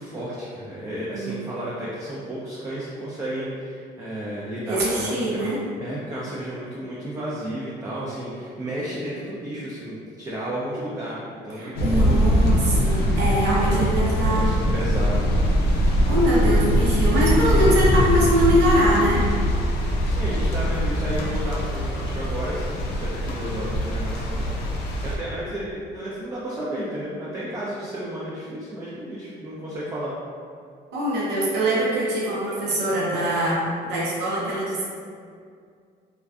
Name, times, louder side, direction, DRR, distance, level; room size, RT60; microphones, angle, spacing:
voice 1, 0.0-5.5 5.8-12.7 13.6-15.3 20.0-24.6 24.9-30.1, right 1 dB, 20° right, -7 dB, 0.4 m, -32 dB
voice 2, 4.7-5.6 11.5-14.5 15.7-19.3 30.9-34.8, right 1 dB, 85° right, -6 dB, 0.7 m, -23 dB
sound 1, 11.8-25.2, equal, 80° left, 0.4 m, -22 dB
2.4 x 2.2 x 2.3 m, 2.3 s
cardioid pair, 110°, 17 cm